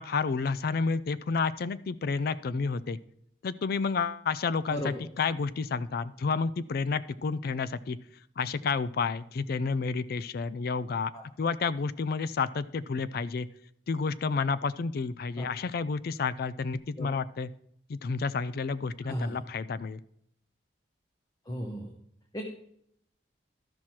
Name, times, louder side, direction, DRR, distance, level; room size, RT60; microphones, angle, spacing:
voice 1, 0.0-3.0 3.4-8.0 8.4-13.5 13.9-17.5 17.9-20.0, left 4 dB, 60° left, 16 dB, 0.4 m, -30 dB
voice 2, 19.0-19.4 21.5-21.9 22.3-22.5, equal, 20° left, 2 dB, 1.0 m, -34 dB
12.5 x 6.1 x 4.3 m, 0.70 s
head